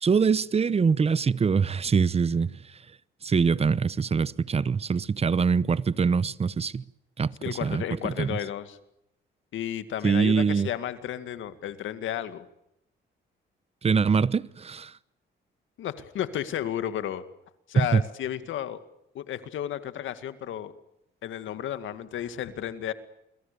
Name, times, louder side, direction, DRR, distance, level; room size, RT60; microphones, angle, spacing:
voice 1, 0.0-2.5 3.2-6.8 7.2-8.4 10.0-10.7 13.8-14.9 17.7-18.0, right 5 dB, 30° right, 0.9 m, -24 dB
voice 2, 7.4-8.8 9.5-12.5 15.8-17.2 17.7-18.8 19.1-20.7 21.2-22.9, left 10 dB, 75° left, 2.1 m, -33 dB
29.0 x 22.5 x 6.9 m
cardioid pair, 90°, 20 cm